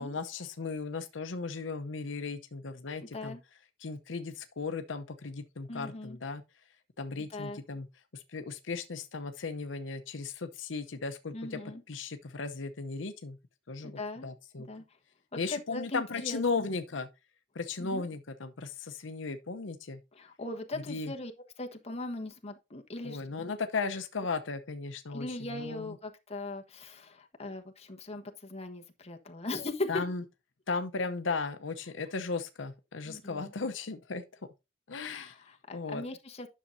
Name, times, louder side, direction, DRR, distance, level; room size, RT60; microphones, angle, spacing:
voice 1, 0.0-3.4 3.8-6.4 7.0-7.9 8.1-11.6 11.9-13.4 13.7-14.7 15.4-17.1 17.5-20.0 20.7-21.1 23.0-26.0 29.9-30.2 30.7-34.2 34.9-35.3 35.7-36.0, left 4 dB, 85° left, 0.8 m, -36 dB
voice 2, 5.7-6.2 7.3-7.6 11.3-11.8 13.8-14.3 14.6-14.8 15.3-16.7 17.8-18.0 20.1-21.3 21.6-23.2 25.1-30.0 33.1-33.5 35.1-36.5, left 2 dB, 35° left, 1.3 m, -39 dB
10.0 x 6.5 x 2.7 m
head